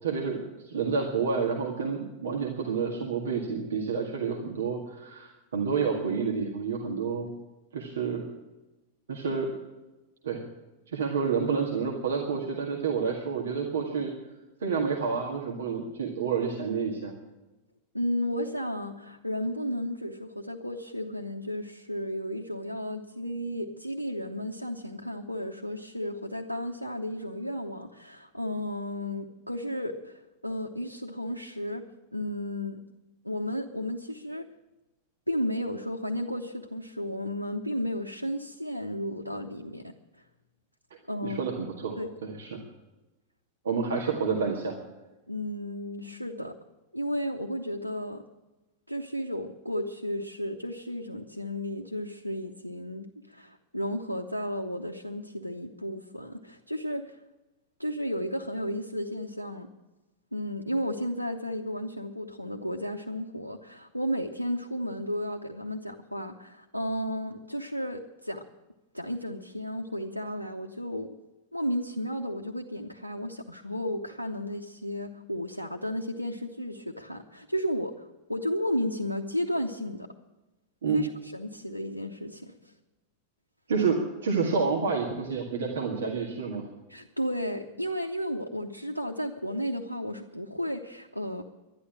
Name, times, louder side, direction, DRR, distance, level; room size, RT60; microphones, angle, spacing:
voice 1, 0.0-7.3 7.7-8.2 9.1-9.5 10.2-10.4 10.9-14.1 14.6-17.2 41.2-42.6 43.6-44.7 80.8-81.0 83.7-86.6, right 5 dB, 65° right, 0 dB, 1.9 m, -29 dB
voice 2, 17.9-31.8 32.1-32.8 33.2-34.4 35.3-39.9 41.1-41.5 42.0-42.1 45.3-46.5 46.9-48.2 48.9-57.2 57.8-59.7 60.3-68.4 68.9-71.2 71.5-80.1 80.9-82.5 86.9-91.4, equal, 90° left, 0 dB, 0.8 m, -33 dB
11.5 x 11.5 x 8.7 m, 1.1 s
figure-of-eight pair, 90°, 0 cm